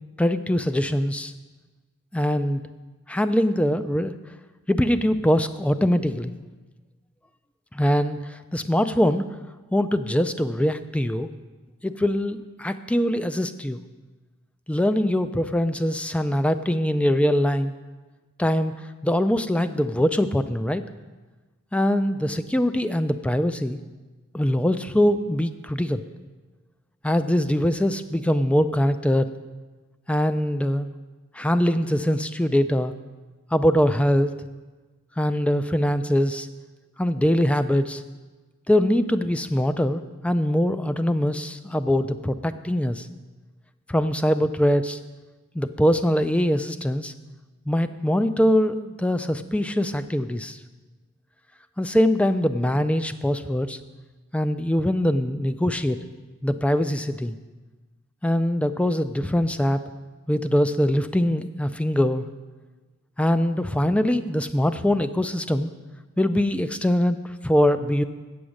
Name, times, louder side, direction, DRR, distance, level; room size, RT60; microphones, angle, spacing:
voice 1, 0.2-1.3 2.1-2.6 3.1-4.1 4.7-6.3 7.7-9.2 9.7-11.3 11.8-13.8 14.7-17.7 18.4-18.7 19.0-20.8 21.7-23.8 24.3-26.0 27.0-29.3 30.1-30.9 31.3-32.9 33.5-34.3 35.2-36.5 37.0-38.0 38.7-43.1 43.9-45.0 45.5-47.1 47.7-50.6 51.8-53.8 54.3-56.0 56.4-57.4 58.2-59.8 60.3-62.3 63.2-65.7 66.2-67.2 67.4-68.0, equal, 5° left, 11 dB, 0.3 m, -22 dB
8.6 x 7.9 x 6.3 m, 1.3 s
head